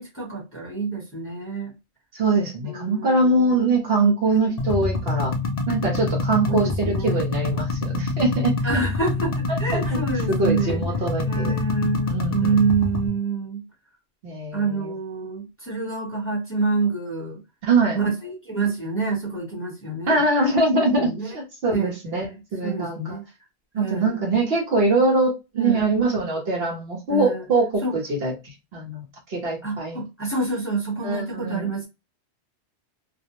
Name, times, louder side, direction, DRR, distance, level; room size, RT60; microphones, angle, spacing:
voice 1, 0.0-1.7 2.6-3.6 4.4-4.5 6.4-7.2 8.6-10.8 11.2-13.6 14.5-17.4 17.9-20.2 20.7-21.3 21.7-21.9 22.6-23.2 23.7-24.3 25.6-25.9 27.1-27.5 27.8-27.9 29.6-31.9, right 4 dB, 10° left, 0.9 m, -27 dB
voice 2, 2.1-5.3 5.7-8.8 9.5-10.0 10.3-11.5 12.1-12.5 14.2-14.9 17.6-18.0 20.1-23.2 23.7-28.3 28.7-29.0 29.3-30.0 31.0-31.7, right 2 dB, 65° right, 1.0 m, -23 dB
sound 1, 4.6-13.1, left 3 dB, 55° left, 0.4 m, -26 dB
2.5 x 2.0 x 2.8 m
omnidirectional pair, 1.1 m